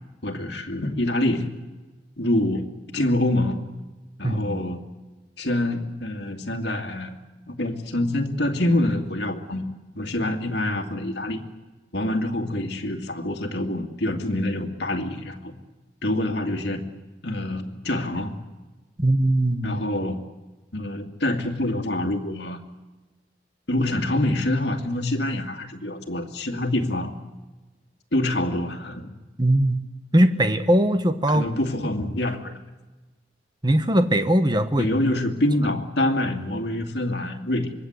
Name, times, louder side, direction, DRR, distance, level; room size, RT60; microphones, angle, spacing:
voice 1, 0.2-1.5 2.2-2.6 2.9-3.7 4.2-4.8 5.4-7.1 7.5-9.6 9.9-11.4 11.9-15.5 16.0-16.8 17.2-18.3 19.6-20.2 20.7-22.6 23.7-27.1 28.1-29.1 31.3-32.6 34.8-37.7, left 1 dB, 65° left, 4 dB, 2.4 m, -26 dB
voice 2, 4.2-4.6 19.0-19.8 29.4-29.8 30.1-31.4 33.6-34.9, right 1 dB, 25° right, 9 dB, 1.3 m, -20 dB
25.5 x 21.5 x 8.1 m, 1.2 s
head